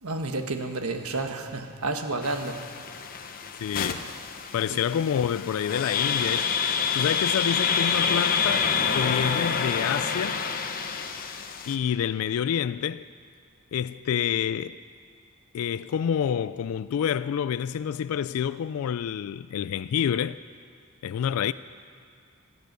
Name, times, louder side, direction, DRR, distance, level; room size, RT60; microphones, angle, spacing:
voice 1, 0.0-2.7 4.7-4.8, right 2 dB, 80° right, 1.3 m, -30 dB
sound 1, 2.2-11.8, left 6 dB, 40° left, 0.8 m, -28 dB
voice 2, 3.6-4.1 4.5-6.5 6.9-10.5 11.7-13.1 13.7-14.8 15.5-20.4 21.0-21.5, left 8 dB, 70° left, 0.3 m, -28 dB
16.5 x 12.5 x 6.7 m
head